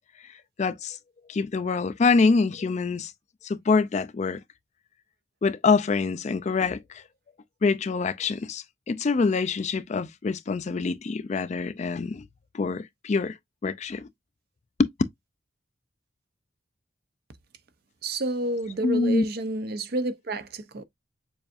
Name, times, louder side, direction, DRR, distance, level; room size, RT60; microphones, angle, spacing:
voice 1, 0.6-1.0 1.3-3.1 3.4-4.4 5.4-7.0 7.6-12.3 12.5-13.4 13.6-14.1 14.8-14.9 18.8-19.2, left 4 dB, 35° left, 0.3 m, -25 dB
voice 2, 18.0-20.8, right 2 dB, 50° right, 0.6 m, -30 dB
6.9 x 2.5 x 2.5 m
head